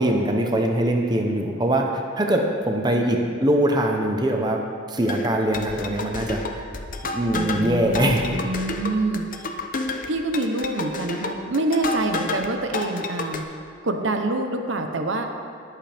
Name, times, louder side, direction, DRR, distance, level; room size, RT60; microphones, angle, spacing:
voice 1, 0.0-4.6 4.9-6.7 7.1-8.5, right 1 dB, 20° right, 2 dB, 0.8 m, -22 dB
sound 1, 5.1-12.5 12.7-13.4, left 3 dB, 45° left, 0.8 m, -30 dB
voice 2, 7.3-9.2 10.1-13.4 13.8-15.3, right 2 dB, 65° right, 5 dB, 0.8 m, -26 dB
20.5 x 7.8 x 3.5 m, 2.3 s
head